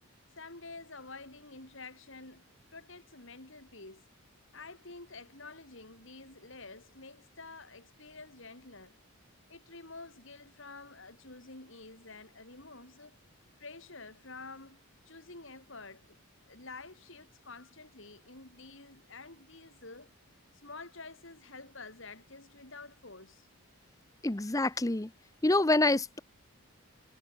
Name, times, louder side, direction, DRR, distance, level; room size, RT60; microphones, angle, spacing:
voice 1, 0.4-4.1 4.5-9.0 9.5-13.2 13.6-16.2 16.5-20.1 20.5-23.5, left 3 dB, 55° left, 3.2 m, -49 dB
voice 2, 24.2-25.1 25.4-26.2, left 2 dB, 15° left, 0.6 m, -26 dB
head